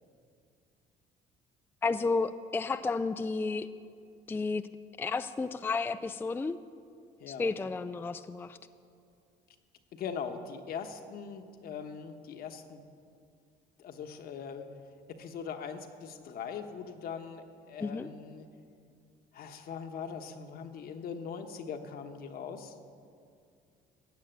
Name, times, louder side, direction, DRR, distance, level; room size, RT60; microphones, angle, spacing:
voice 1, 1.8-3.7 4.3-4.7 5.0-6.6 7.3-8.6 17.8-18.1, left 4 dB, 10° left, 11 dB, 0.3 m, -32 dB
voice 2, 7.2-7.5 9.9-12.8 13.8-14.7 15.2-18.5 19.3-22.7, left 6 dB, 65° left, 6 dB, 1.2 m, -41 dB
15.0 x 6.7 x 9.1 m, 2.4 s
cardioid pair, 110°, 17 cm